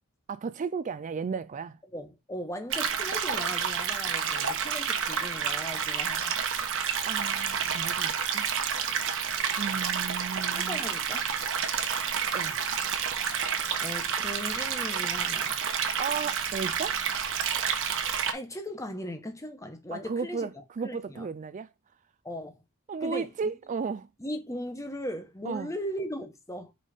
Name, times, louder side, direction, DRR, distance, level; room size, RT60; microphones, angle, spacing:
voice 1, 0.3-1.8 7.1-8.5 9.6-10.8 12.3-12.6 16.0-17.0 19.9-21.7 22.9-24.1 25.5-25.7, right 5 dB, 35° right, 0.3 m, -34 dB
voice 2, 1.9-6.4 10.5-11.3 13.8-15.6 18.3-20.5 20.8-21.3 22.2-22.6 23.0-23.5 24.2-26.7, equal, 15° left, 1.0 m, -38 dB
sound 1, 2.7-18.3, right 7 dB, 60° right, 1.1 m, -29 dB
5.3 x 4.0 x 5.0 m
head